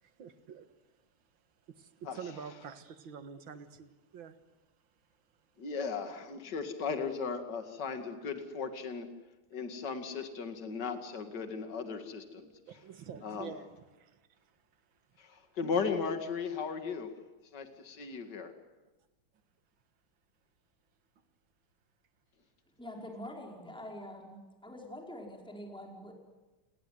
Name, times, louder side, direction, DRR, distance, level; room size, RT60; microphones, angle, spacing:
voice 1, 0.0-0.7 1.7-4.4 12.7-13.7 13.9-14.6, right 7 dB, 70° right, 2.3 m, -47 dB
voice 2, 5.6-9.1 9.5-12.5 13.2-13.5 15.2-17.1 17.5-18.5, left 5 dB, 55° left, 2.7 m, -36 dB
voice 3, 22.8-26.1, left 1 dB, ahead, 4.7 m, -45 dB
29.5 x 20.0 x 9.5 m
omnidirectional pair, 2.3 m